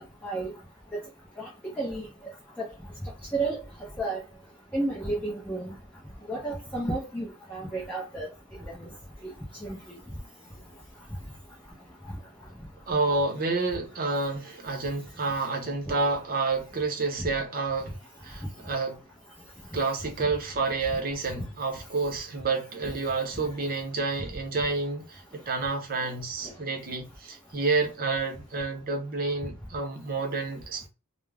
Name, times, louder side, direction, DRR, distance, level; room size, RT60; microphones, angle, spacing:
voice 1, 0.2-0.5 1.4-1.5 1.8-2.0 2.6-2.7 3.3-3.6 4.0-4.2 4.7-5.7 6.3-8.3 8.7-8.9 9.6-9.8 22.9-23.0, right 2 dB, 5° left, 0.5 m, -31 dB
voice 2, 12.9-17.9 18.2-19.0 19.7-30.9, right 3 dB, 40° right, 0.7 m, -29 dB
2.4 x 2.0 x 3.2 m
head